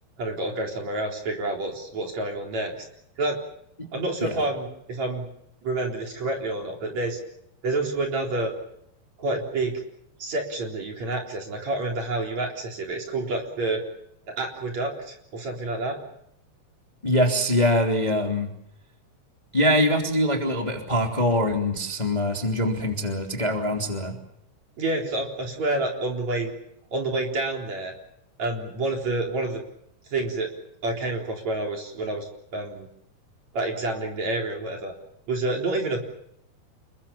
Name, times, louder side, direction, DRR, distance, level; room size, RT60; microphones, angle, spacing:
voice 1, 0.2-2.8 3.2-3.4 3.9-5.3 5.6-7.2 7.6-8.5 9.2-9.8 10.2-13.8 14.3-16.0 24.8-26.5 26.9-27.9 28.4-29.6 30.1-30.5 30.8-32.9 33.5-34.9 35.3-36.1, right 2 dB, 45° right, 1 dB, 5.0 m, -28 dB
voice 2, 17.0-18.5 19.5-24.1, left 1 dB, 10° left, 2 dB, 2.8 m, -23 dB
29.0 x 22.0 x 7.3 m, 0.75 s
omnidirectional pair, 4.5 m